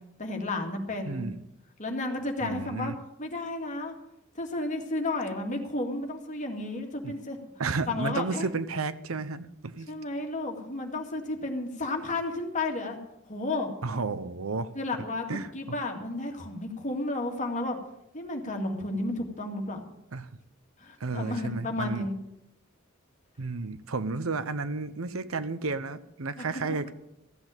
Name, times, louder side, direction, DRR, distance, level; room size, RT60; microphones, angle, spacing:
voice 1, 0.2-1.3 1.8-2.9 3.2-3.9 4.4-7.4 7.9-8.5 9.9-13.0 13.3-13.7 14.7-17.8 18.1-19.8 20.8-22.2 26.4-26.5, left 2 dB, 35° left, 3 dB, 2.2 m, -32 dB
voice 2, 1.0-1.4 2.4-2.9 7.0-7.1 7.6-9.9 13.8-14.7 15.3-15.5 20.1-20.3 21.0-22.1 23.4-26.9, right 3 dB, 80° right, 14 dB, 0.8 m, -32 dB
15.0 x 8.0 x 8.9 m, 0.86 s
head